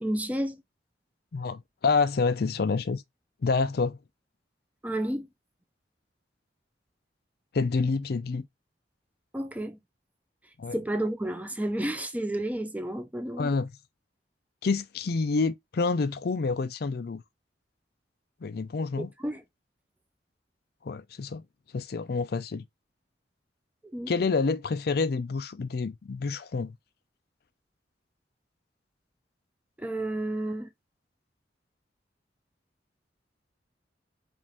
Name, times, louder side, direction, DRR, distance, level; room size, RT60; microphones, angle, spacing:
voice 1, 0.0-0.6 4.8-5.3 9.3-9.8 10.7-13.5 19.2-19.4 23.9-24.1 29.8-30.7, right 1 dB, 10° right, 0.5 m, -31 dB
voice 2, 1.3-3.0 3.4-4.0 7.5-8.4 10.6-10.8 13.4-13.7 14.6-17.2 18.4-19.1 20.8-21.4 21.7-22.6 24.1-26.8, left 4 dB, 55° left, 0.4 m, -28 dB
5.1 x 2.6 x 3.4 m
head